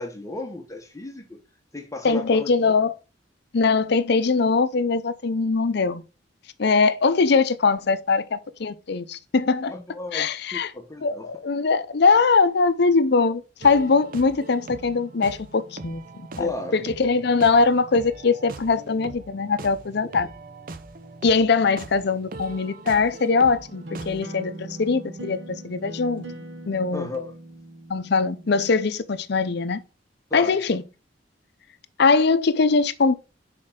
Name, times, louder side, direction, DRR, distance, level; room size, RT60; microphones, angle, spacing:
voice 1, 0.0-1.4 1.7-2.7 9.7-11.3 16.4-16.8 26.9-27.3 30.3-30.6, left 2 dB, 15° left, 0.9 m, -34 dB
voice 2, 2.0-2.9 3.5-6.0 6.6-9.7 10.1-10.7 11.0-16.0 16.4-20.3 21.2-25.4 25.6-26.2 26.7-27.1 27.9-29.8 30.3-30.8 32.0-33.1, left 4 dB, 60° left, 0.6 m, -21 dB
sound 1, 13.6-24.2, right 3 dB, 50° right, 0.6 m, -41 dB
sound 2, 23.7-28.8, right 1 dB, 85° right, 1.2 m, -39 dB
6.5 x 4.4 x 3.7 m
head